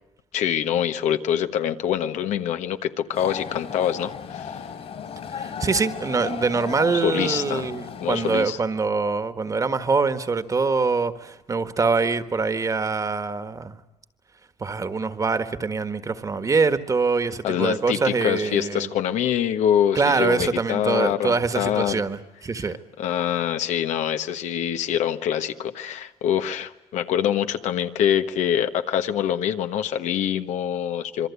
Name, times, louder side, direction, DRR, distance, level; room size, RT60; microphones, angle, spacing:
voice 1, 0.3-4.6 7.0-7.7 8.0-8.6 17.4-22.0 23.0-31.3, left 10 dB, 85° left, 1.3 m, -25 dB
sound 1, 3.1-8.4, left 7 dB, 60° left, 3.3 m, -35 dB
voice 2, 5.3-13.8 14.6-18.9 19.9-22.8, right 4 dB, 30° right, 1.6 m, -24 dB
26.5 x 23.5 x 8.4 m
cardioid pair, 120°, 12 cm